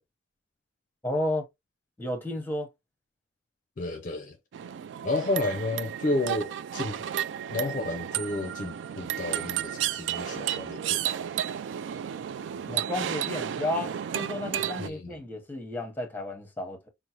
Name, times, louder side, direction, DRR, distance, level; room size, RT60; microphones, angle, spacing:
voice 1, 1.0-1.5 2.0-2.7 12.7-16.9, left 1 dB, 10° left, 0.9 m, -32 dB
voice 2, 3.8-4.4 5.0-7.1 7.5-11.3 14.8-15.2, left 2 dB, 45° left, 0.5 m, -31 dB
sound 1, 4.5-14.9, right 10 dB, 80° right, 0.3 m, -32 dB
5.2 x 2.0 x 2.8 m
head